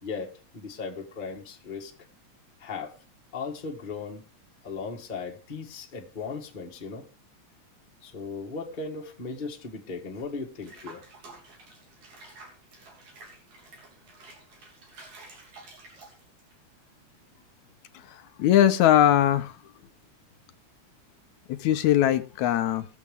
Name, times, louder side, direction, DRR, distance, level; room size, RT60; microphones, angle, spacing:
voice 1, 0.0-2.1 2.6-3.0 3.3-4.2 4.6-7.1 8.0-11.0 14.1-14.2, left 4 dB, 25° left, 1.2 m, -37 dB
Water / Bathtub (filling or washing), 10.6-16.5, right 3 dB, 75° right, 4.5 m, -50 dB
voice 2, 18.0-19.5 21.5-22.9, left 11 dB, 80° left, 2.1 m, -21 dB
21.0 x 7.2 x 3.5 m
omnidirectional pair, 3.4 m